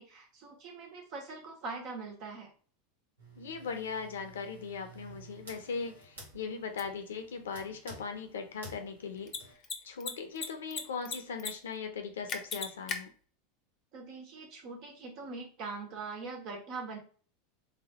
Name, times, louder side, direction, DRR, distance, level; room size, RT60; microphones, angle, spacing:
voice 1, 0.0-2.5 13.9-17.0, right 4 dB, 50° right, 1 dB, 1.4 m, -42 dB
sound 1, 3.2-9.5, right 1 dB, 85° right, 1.4 m, -52 dB
voice 2, 3.4-9.3 9.8-13.1, left 5 dB, 75° left, 6 dB, 0.7 m, -39 dB
Mechanisms, 6.8-6.9 9.2-9.4 9.6-9.7 10.0-10.8 11.0-11.5 11.8-11.9 12.3-13.0, left 5 dB, 35° left, 0.7 m, -35 dB
3.5 x 3.1 x 2.9 m, 0.40 s
hypercardioid pair, 85°, 0 cm